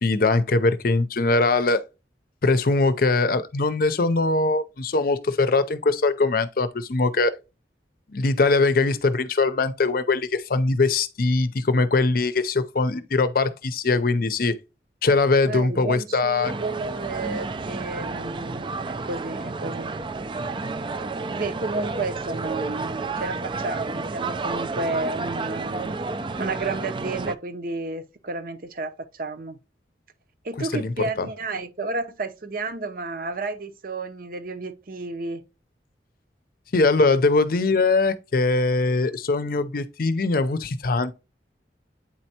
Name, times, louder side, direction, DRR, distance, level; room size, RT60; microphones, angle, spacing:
voice 1, 0.0-1.8 2.4-7.4 8.1-14.5 15.0-16.5 30.6-31.3 36.7-41.1, left 3 dB, 55° left, 0.6 m, -21 dB
voice 2, 15.5-19.9 21.3-25.9 26.4-29.6 30.4-35.4, right 3 dB, 55° right, 0.7 m, -31 dB
sound 1, 16.4-27.4, right 3 dB, 30° right, 0.4 m, -31 dB
8.7 x 4.4 x 2.8 m
head